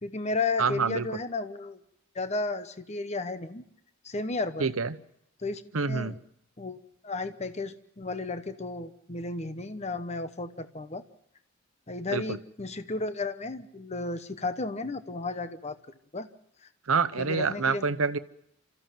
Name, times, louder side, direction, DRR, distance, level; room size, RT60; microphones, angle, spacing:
voice 1, 0.0-1.8 2.1-3.6 4.0-4.7 5.4-5.6 5.9-6.2 6.6-6.8 7.0-11.0 11.9-15.8 16.1-16.3 17.2-17.9, left 3 dB, 30° left, 11 dB, 0.9 m, -33 dB
voice 2, 0.6-1.1 4.6-5.0 5.7-6.2 12.1-12.4 16.9-18.2, right 5 dB, 75° right, 12 dB, 0.9 m, -27 dB
27.5 x 14.5 x 7.6 m, 0.76 s
head